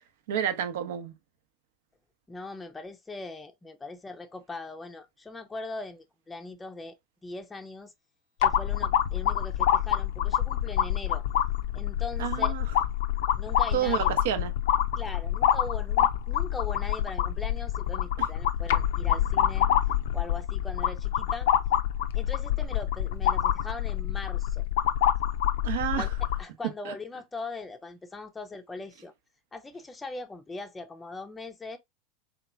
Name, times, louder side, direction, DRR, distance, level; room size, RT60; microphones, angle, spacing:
voice 1, 0.3-1.1 12.2-12.6 13.7-14.5 25.6-26.1 26.8-26.9, right 10 dB, 70° right, 0.7 m, -29 dB
voice 2, 2.3-6.9 7.2-7.9 8.4-11.2 11.7-12.5 13.4-14.1 15.0-19.7 20.1-21.5 22.1-24.6 26.0-26.1 26.4-29.1 29.5-31.8, left 3 dB, 15° left, 0.5 m, -40 dB
sound 1, 8.4-26.4, left 11 dB, 75° left, 0.4 m, -26 dB
3.5 x 2.9 x 2.2 m
hypercardioid pair, 95°, 0 cm